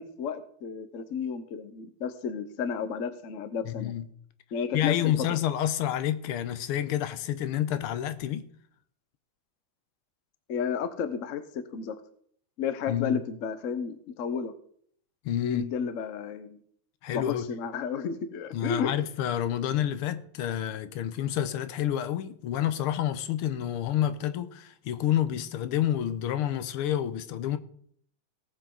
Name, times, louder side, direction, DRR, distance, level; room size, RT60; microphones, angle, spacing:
voice 1, 0.0-3.9 4.5-5.4 10.5-12.0 12.6-14.5 15.4-16.6 17.1-18.9, left 6 dB, 55° left, 0.9 m, -32 dB
voice 2, 3.6-4.0 4.7-8.4 12.9-13.2 15.2-15.7 17.0-17.5 18.5-27.6, left 11 dB, 85° left, 1.7 m, -29 dB
18.5 x 7.3 x 3.9 m
omnidirectional pair, 2.4 m